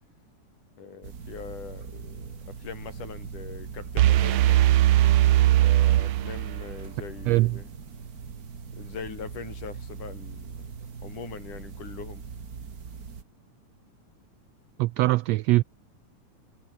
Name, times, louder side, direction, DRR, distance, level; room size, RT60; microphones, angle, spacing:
voice 1, 0.8-4.6 5.6-7.7 8.8-10.7 11.0-12.2, left 6 dB, 90° left, 5.1 m, -42 dB
sound 1, 1.0-13.2, right 5 dB, 35° right, 2.0 m, -41 dB
sound 2, 4.0-6.9, right 13 dB, 65° right, 1.6 m, -20 dB
voice 2, 7.3-7.6 14.8-15.6, right 19 dB, 85° right, 1.5 m, -22 dB
omnidirectional pair, 3.5 m